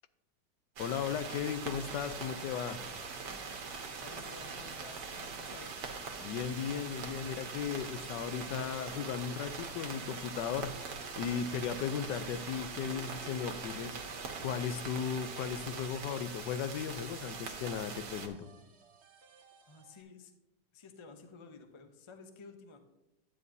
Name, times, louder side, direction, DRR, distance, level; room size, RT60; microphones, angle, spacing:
voice 1, 0.8-2.8 6.2-10.7 11.2-13.9 14.4-18.5, left 8 dB, 85° left, 12 dB, 1.2 m, -36 dB
sound 1, 0.8-18.3, right 4 dB, 75° right, 1.6 m, -42 dB
voice 2, 4.0-5.8 19.7-20.3 20.7-22.8, left 4 dB, 50° left, 6 dB, 0.3 m, -52 dB
sound 2, 7.2-20.0, right 4 dB, 45° right, 1.0 m, -59 dB
11.0 x 8.7 x 2.7 m, 0.93 s
omnidirectional pair, 1.9 m